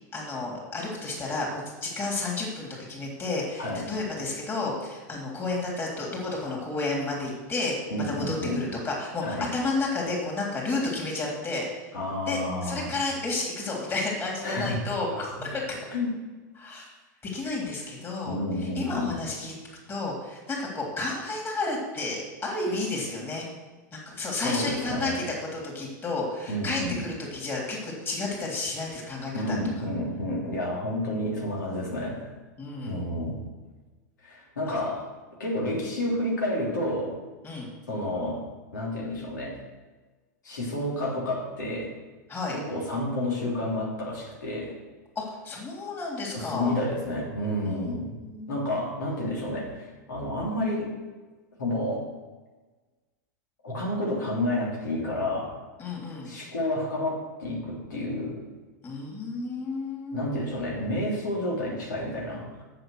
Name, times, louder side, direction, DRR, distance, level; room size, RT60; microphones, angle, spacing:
voice 1, 0.1-7.7 8.1-11.9 12.3-15.3 15.7-15.8 16.6-16.9 17.3-18.4 18.7-19.5 19.9-23.5 23.9-25.2 25.5-29.6 32.6-33.0 34.7-34.8 37.4-37.7 42.3-42.6 45.2-46.7 47.6-47.8 48.2-48.5 55.8-56.3 58.8-60.4, left 3 dB, 25° left, -3 dB, 3.5 m, -31 dB
voice 2, 7.9-8.6 9.2-9.5 11.9-12.9 14.4-14.8 15.9-16.1 18.2-19.2 24.4-25.2 26.5-27.0 29.3-32.3 32.8-33.4 34.2-35.1 35.4-37.2 37.9-38.4 38.7-39.6 40.4-41.9 42.5-44.8 46.3-48.2 48.5-50.9 51.6-52.1 53.6-55.5 56.2-58.4 60.1-62.6, left 1 dB, 90° left, -4 dB, 3.2 m, -30 dB
7.7 x 7.4 x 6.5 m, 1.3 s
hypercardioid pair, 110°, 10 cm